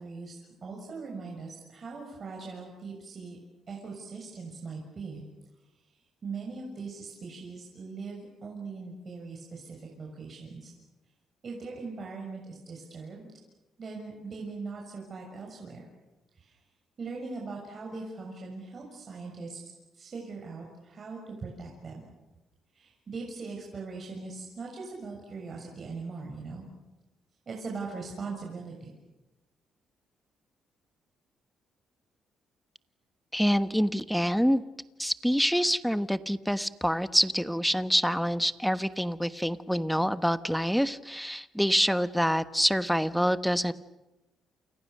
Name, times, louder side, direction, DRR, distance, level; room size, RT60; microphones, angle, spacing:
voice 1, 0.0-3.4 3.7-5.2 5.9-10.7 11.4-13.2 13.8-15.9 16.3-16.6 17.0-19.6 19.9-22.0 22.7-26.6 27.4-28.9, right 4 dB, 45° right, 0 dB, 6.6 m, -40 dB
voice 2, 33.3-34.6 35.0-43.7, equal, ahead, 12 dB, 1.2 m, -26 dB
29.0 x 28.5 x 6.7 m, 1.0 s
cardioid pair, 90°, 0 cm